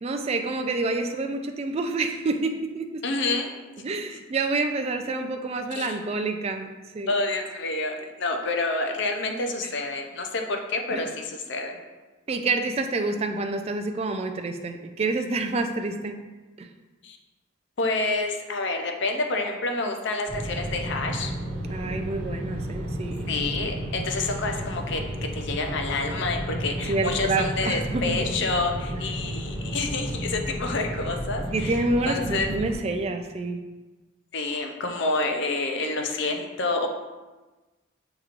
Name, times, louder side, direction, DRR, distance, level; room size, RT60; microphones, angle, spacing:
voice 1, 0.0-2.8 3.8-6.7 6.9-7.1 10.9-11.1 12.3-16.2 16.6-16.7 21.7-23.3 26.9-28.2 31.5-33.6, right 3 dB, 30° right, 6 dB, 0.3 m, -28 dB
voice 2, 3.0-3.5 5.7-6.0 7.1-11.8 17.0-17.2 17.8-21.3 23.3-25.0 25.3-32.5 34.3-36.9, left 3 dB, 60° left, 3 dB, 0.5 m, -28 dB
sound 1, 20.3-32.8, equal, 80° right, 1.1 m, -32 dB
6.6 x 3.0 x 2.4 m, 1.2 s
head